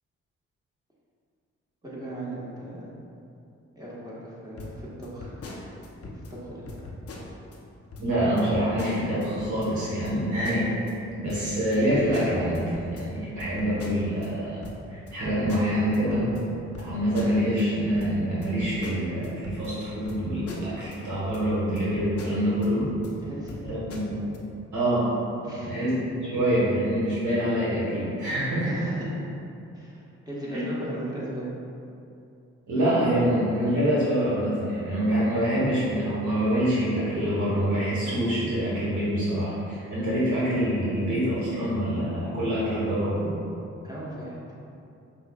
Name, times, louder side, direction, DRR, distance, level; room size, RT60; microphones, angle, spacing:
voice 1, 1.8-2.9 3.7-5.7 6.1-6.7 23.2-23.6 25.4-25.8 28.6-29.3 29.7-31.5 43.8-44.4, right 1 dB, 10° right, -7 dB, 1.3 m, -37 dB
sound 1, 4.6-6.4 6.7-7.6 7.9-8.1 8.4-9.7 10.0-10.9 11.3-14.3 14.6-17.7 18.0-21.0 21.3-21.5 21.8-23.1 23.5-24.4, left 2 dB, 50° left, 0.6 m, -41 dB
voice 2, 8.0-14.6 14.9-16.2 16.8-22.9 23.6-24.3 24.7-25.1 25.5-25.9 26.2-28.7 30.5-30.7 32.7-43.3, equal, 65° right, -9 dB, 1.3 m, -26 dB
5.3 x 2.4 x 2.3 m, 2.6 s
hypercardioid pair, 45°, 31 cm